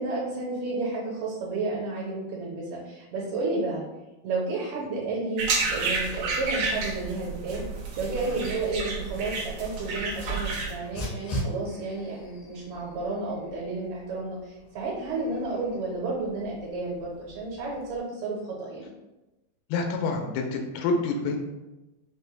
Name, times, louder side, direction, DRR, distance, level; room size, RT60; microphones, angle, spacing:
voice 1, 0.0-3.8 4.2-7.6 8.0-18.8, right 3 dB, 70° right, -4 dB, 2.1 m, -31 dB
sound 1, 5.4-10.7, right 3 dB, 90° right, 1.6 m, -30 dB
Dog, 8.9-18.0, equal, 70° left, 1.2 m, -41 dB
voice 2, 19.7-21.4, left 3 dB, 90° left, 3 dB, 2.6 m, -27 dB
6.0 x 2.2 x 3.2 m, 1.0 s
omnidirectional pair, 4.5 m